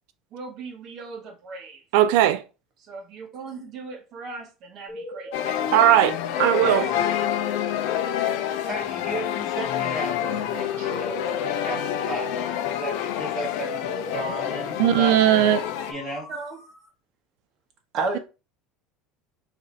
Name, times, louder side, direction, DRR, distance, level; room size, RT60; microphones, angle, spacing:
voice 1, 0.3-1.8 2.9-5.6 16.3-16.6 17.9-18.2, right 3 dB, 35° right, 0.8 m, -35 dB
voice 2, 1.9-2.4 5.7-6.9 14.8-15.6, right 12 dB, 70° right, 0.3 m, -18 dB
sound 1, 4.9-16.9, left 4 dB, 45° left, 0.9 m, -41 dB
sound 2, 5.3-15.9, left 10 dB, 65° left, 0.4 m, -28 dB
voice 3, 6.6-7.0 8.6-15.2 15.9-16.3, right 2 dB, 15° right, 2.2 m, -34 dB
3.1 x 2.5 x 4.0 m
cardioid pair, 170°, 0 cm